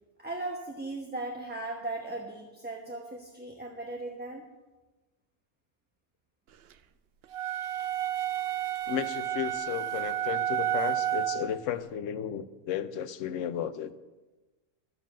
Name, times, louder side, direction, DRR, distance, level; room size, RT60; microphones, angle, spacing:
voice 1, 0.2-4.4 7.8-7.9, right 2 dB, 10° right, 0 dB, 0.9 m, -37 dB
sound 1, 7.3-11.6, right 11 dB, 60° right, 0.7 m, -31 dB
voice 2, 8.9-13.9, left 9 dB, 80° left, 12 dB, 1.0 m, -34 dB
12.0 x 7.4 x 7.3 m, 1.2 s
omnidirectional pair, 1.3 m